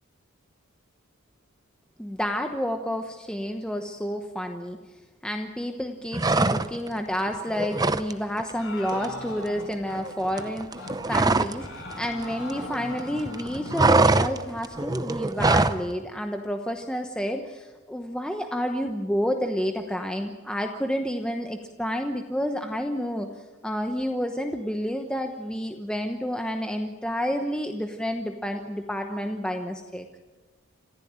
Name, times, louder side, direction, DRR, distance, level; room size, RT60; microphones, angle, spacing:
voice 1, 2.0-4.8 5.2-10.7 11.1-23.3 23.6-30.1, equal, 5° left, 5 dB, 1.0 m, -30 dB
sound 1, 6.1-7.0 7.3-8.1 8.4-8.6 8.9-11.7 11.9-13.0 13.3-15.8, right 3 dB, 15° right, 0.6 m, -23 dB
sound 2, 8.6-10.0 10.3-10.5 10.8-11.0 11.2-14.0, left 2 dB, 60° left, 5.5 m, -39 dB
27.5 x 14.5 x 8.8 m, 1.3 s
head